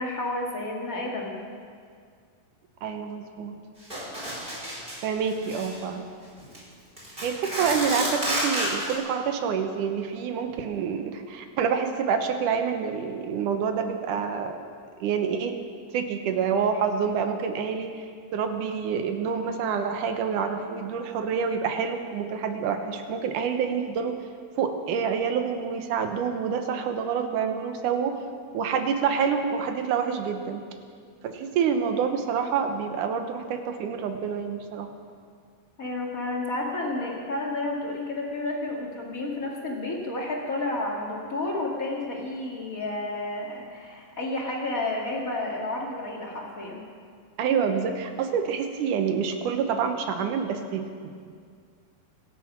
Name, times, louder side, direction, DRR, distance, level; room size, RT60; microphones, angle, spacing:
voice 1, 0.0-1.4 35.8-46.8, left 2 dB, 30° left, -2 dB, 1.6 m, -31 dB
voice 2, 2.8-3.6 5.0-6.1 7.2-14.6 15.0-15.6 15.9-18.1 18.3-24.2 24.6-28.2 28.5-30.7 31.2-34.9 47.4-51.3, right 6 dB, 70° right, 6 dB, 2.2 m, -27 dB
sound 1, 3.9-5.0 5.3-5.8 6.4-6.6 7.0-8.9, right 1 dB, 15° right, 4.2 m, -30 dB
25.0 x 9.0 x 6.0 m, 2.1 s
omnidirectional pair, 4.4 m